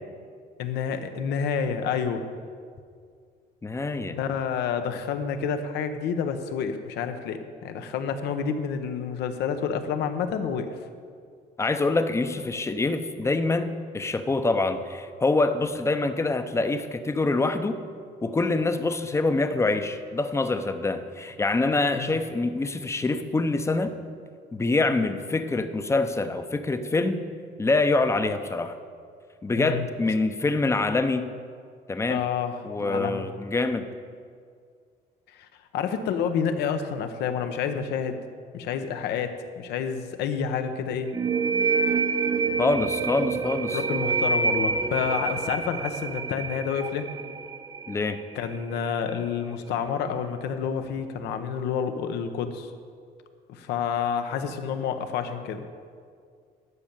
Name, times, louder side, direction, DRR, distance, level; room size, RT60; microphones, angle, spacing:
voice 1, 0.6-2.2 4.1-10.8 22.0-22.2 29.6-29.9 32.1-33.3 35.3-35.5 35.7-38.2 38.5-41.1 43.7-47.1 48.3-52.7 53.5-55.6, left 7 dB, 80° left, 8 dB, 1.0 m, -29 dB
voice 2, 3.6-4.2 11.6-17.8 18.2-23.9 24.5-27.2 27.6-28.8 29.4-31.3 31.9-32.2 32.6-33.9 42.6-43.8 47.9-48.2, left 3 dB, 15° left, 9 dB, 0.7 m, -25 dB
sound 1, 41.1-48.6, right 4 dB, 20° right, 0.5 m, -27 dB
12.5 x 5.4 x 8.8 m, 2.1 s
cardioid pair, 110°, 17 cm